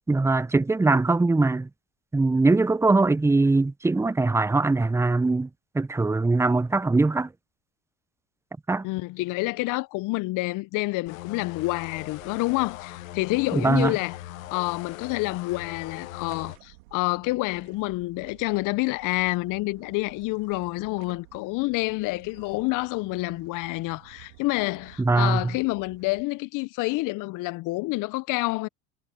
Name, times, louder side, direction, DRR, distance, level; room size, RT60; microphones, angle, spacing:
voice 1, 0.1-1.7 2.1-5.5 5.7-7.3 8.7-8.8 13.5-13.9 25.0-25.4, right 3 dB, 5° right, 0.7 m, -21 dB
voice 2, 8.8-14.2 14.5-28.7, left 22 dB, 50° left, 0.8 m, -28 dB
sound 1, 11.1-16.6, left 17 dB, 80° left, 0.9 m, -41 dB
sound 2, 11.7-26.2, right 23 dB, 70° right, 3.0 m, -53 dB
hypercardioid pair, 80°, 40 cm